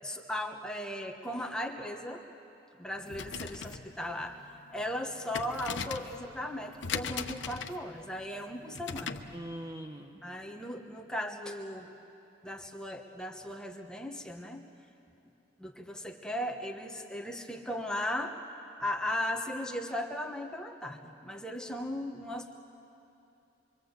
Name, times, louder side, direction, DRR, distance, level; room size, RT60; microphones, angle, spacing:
voice 1, 0.0-2.2 2.8-4.3 4.7-9.2 10.2-11.9 12.4-14.7 15.6-18.4 18.8-22.5, left 1 dB, 5° left, 3 dB, 1.2 m, -37 dB
sound 1, 3.0-9.4, left 6 dB, 90° left, 0.9 m, -40 dB
voice 2, 9.3-10.2, right 1 dB, 20° right, 3 dB, 1.0 m, -42 dB
26.0 x 24.0 x 8.1 m, 2.9 s
head